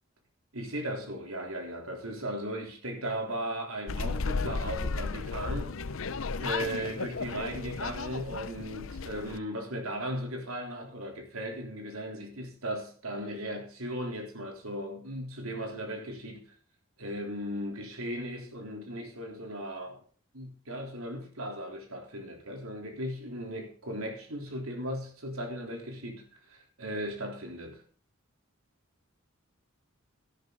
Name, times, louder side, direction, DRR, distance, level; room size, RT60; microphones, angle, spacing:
voice 1, 0.5-5.7 6.4-16.5 17.0-20.0 20.3-27.8, equal, 85° right, 3.7 m, -37 dB
sound 1, 3.9-9.4, left 4 dB, 65° left, 0.7 m, -34 dB
13.0 x 12.0 x 4.0 m
head